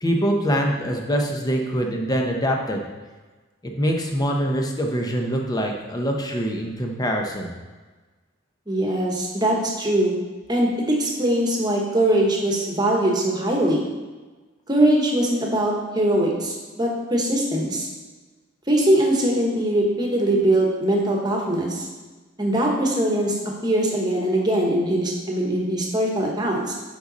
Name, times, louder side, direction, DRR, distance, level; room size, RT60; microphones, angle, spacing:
voice 1, 0.0-2.8 3.6-7.5, equal, 20° left, 2 dB, 0.8 m, -24 dB
voice 2, 8.7-10.1 10.5-13.8 14.7-17.9 18.7-21.9 22.4-26.7, right 1 dB, 20° right, -1 dB, 1.3 m, -21 dB
7.7 x 5.3 x 4.1 m, 1.3 s
head